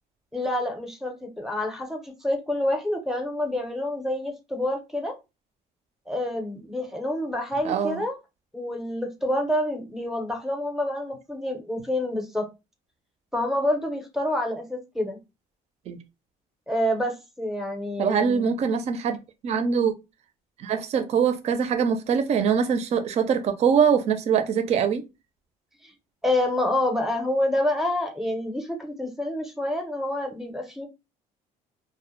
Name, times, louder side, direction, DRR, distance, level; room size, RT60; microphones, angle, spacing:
voice 1, 0.3-5.1 6.1-8.1 8.5-12.5 13.3-15.2 16.7-18.5 25.8-25.9 26.2-30.9, left 1 dB, 5° right, 0.6 m, -27 dB
voice 2, 7.6-8.0 15.9-16.0 18.0-19.2 19.4-19.9 20.6-25.0, right 7 dB, 45° right, 0.4 m, -23 dB
2.1 x 2.0 x 3.0 m
cardioid pair, 110°, 15 cm